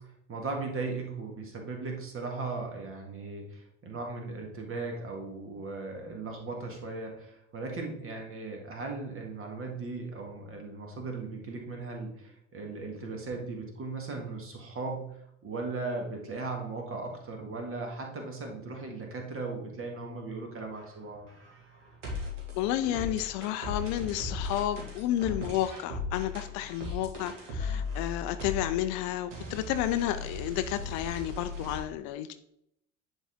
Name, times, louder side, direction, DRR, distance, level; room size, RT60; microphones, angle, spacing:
voice 1, 0.0-21.3, right 3 dB, 35° right, 2 dB, 2.0 m, -37 dB
sound 1, 20.6-31.8, left 3 dB, 70° right, 2.0 m, -38 dB
voice 2, 22.6-32.3, left 12 dB, 50° left, 11 dB, 0.5 m, -31 dB
10.0 x 4.1 x 3.6 m, 0.76 s
figure-of-eight pair, 60°, 38 cm